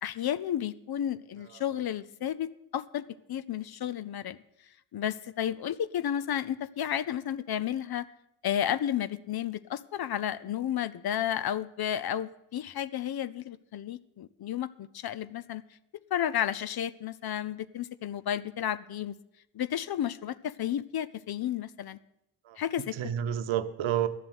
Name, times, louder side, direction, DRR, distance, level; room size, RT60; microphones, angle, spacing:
voice 1, 0.0-4.4 4.9-8.1 8.4-15.6 16.1-19.1 19.5-22.0 22.6-22.9, left 10 dB, 50° left, 15 dB, 0.6 m, -32 dB
voice 2, 22.4-24.1, right 10 dB, 70° right, 11 dB, 0.9 m, -31 dB
11.0 x 7.4 x 8.1 m, 0.81 s
supercardioid pair, 60°, 48 cm